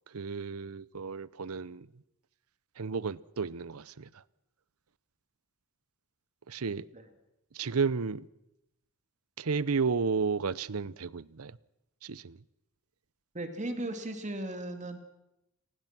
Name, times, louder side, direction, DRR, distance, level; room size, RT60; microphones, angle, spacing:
voice 1, 0.1-1.9 2.8-4.1 6.5-6.9 7.5-8.3 9.4-11.6 12.0-12.4, right 5 dB, 85° right, 0.7 m, -32 dB
voice 2, 13.3-15.0, right 1 dB, 35° right, 2.7 m, -36 dB
28.5 x 20.0 x 6.0 m
head